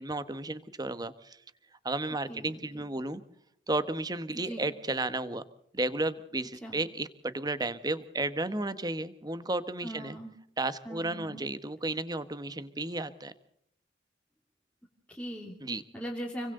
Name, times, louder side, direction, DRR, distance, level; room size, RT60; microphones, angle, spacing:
voice 1, 0.0-1.4 1.8-3.2 3.7-5.4 5.7-10.2 10.6-13.3 15.6-15.8, right 2 dB, 20° right, 12 dB, 1.4 m, -33 dB
voice 2, 2.3-2.9 4.3-4.7 6.6-6.8 9.8-10.3 10.8-11.5 15.1-15.6 15.9-16.5, equal, 5° left, -2 dB, 3.0 m, -40 dB
30.0 x 23.5 x 3.9 m, 0.69 s
head